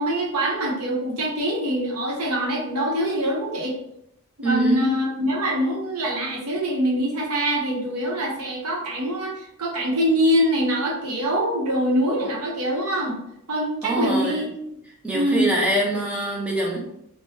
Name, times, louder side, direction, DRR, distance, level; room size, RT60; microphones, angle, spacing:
voice 1, 0.0-3.7 4.4-13.2 13.5-14.5 15.1-15.5, equal, 80° right, -2 dB, 0.9 m, -24 dB
voice 2, 4.4-4.9 13.8-14.4 15.0-16.8, right 1 dB, 5° right, -4 dB, 0.6 m, -24 dB
2.8 x 2.2 x 3.1 m, 0.78 s
head